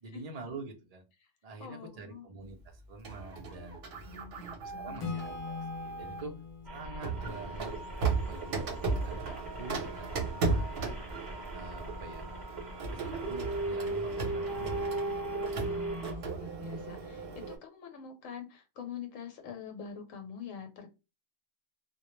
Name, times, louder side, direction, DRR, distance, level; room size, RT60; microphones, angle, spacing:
voice 1, 0.0-1.0 1.4-3.8 4.5-6.3 6.7-7.7 8.2-10.9 11.5-12.3 12.8-14.9, right 3 dB, 70° right, 3 dB, 0.3 m, -46 dB
voice 2, 1.6-2.2 4.0-5.1 15.6-20.9, left 4 dB, 80° left, 5 dB, 1.0 m, -44 dB
Printer, 3.0-6.3 7.0-17.6, right 3 dB, 55° right, 0.7 m, -35 dB
Acoustic guitar / Strum, 5.0-8.6, left 6 dB, 60° left, 0.3 m, -43 dB
sound 1, 6.6-16.1, right 1 dB, ahead, 0.9 m, -45 dB
2.2 x 2.0 x 2.9 m, 0.27 s
omnidirectional pair, 1.4 m